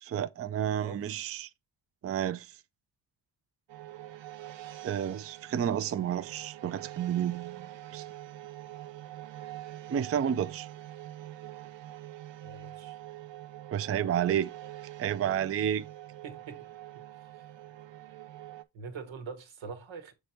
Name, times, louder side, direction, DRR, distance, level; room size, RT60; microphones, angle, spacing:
voice 1, 0.0-1.5 2.0-2.6 4.8-8.1 9.9-10.7 13.7-14.5 15.0-15.9, right 9 dB, 35° right, 0.4 m, -31 dB
sound 1, 3.7-18.6, right 14 dB, 75° right, 0.7 m, -45 dB
voice 2, 12.4-13.0 16.2-16.6 17.1-17.5 18.7-20.1, right 5 dB, 90° right, 1.4 m, -43 dB
6.7 x 3.5 x 4.3 m
cardioid pair, 85°, 45 cm